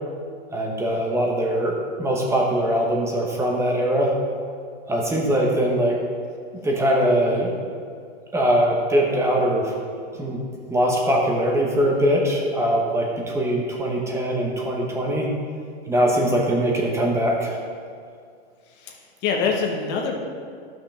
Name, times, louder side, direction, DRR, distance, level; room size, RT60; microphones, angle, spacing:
voice 1, 0.5-4.1 4.9-6.0 6.6-7.5 8.3-9.7 10.2-10.4 10.7-15.3 15.9-17.6, equal, 10° right, -1 dB, 1.1 m, -22 dB
voice 2, 18.7-20.2, left 5 dB, 35° left, 1 dB, 1.3 m, -26 dB
12.5 x 6.0 x 3.4 m, 2.2 s
hypercardioid pair, 140°, 32 cm